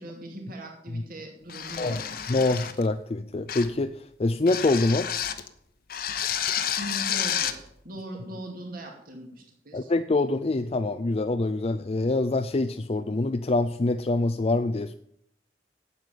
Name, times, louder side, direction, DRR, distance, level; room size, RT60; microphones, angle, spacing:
voice 1, 0.0-2.0 6.8-7.6 7.8-9.9, right 1 dB, 55° right, 1 dB, 2.6 m, -40 dB
sound 1, 1.5-2.9 3.5-3.8 4.5-5.5 5.9-7.6, left 9 dB, 55° left, 1.0 m, -30 dB
voice 2, 2.3-5.1 9.7-14.9, left 2 dB, 35° left, 8 dB, 0.5 m, -25 dB
9.6 x 8.0 x 9.1 m, 0.72 s
head